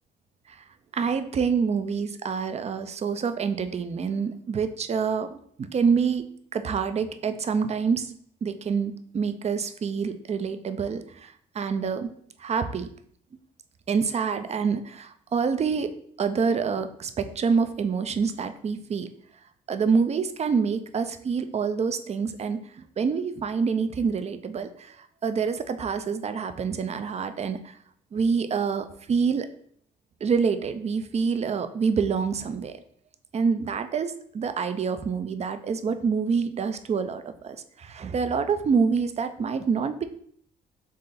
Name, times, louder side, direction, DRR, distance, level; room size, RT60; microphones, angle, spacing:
voice 1, 0.9-8.1 8.4-12.1 12.4-12.9 13.9-19.1 19.7-22.6 23.0-27.7 28.1-29.5 30.2-32.8 33.3-40.0, right 5 dB, 35° right, 9 dB, 0.4 m, -27 dB
3.8 x 3.2 x 4.0 m, 0.63 s
cardioid pair, 90°, 20 cm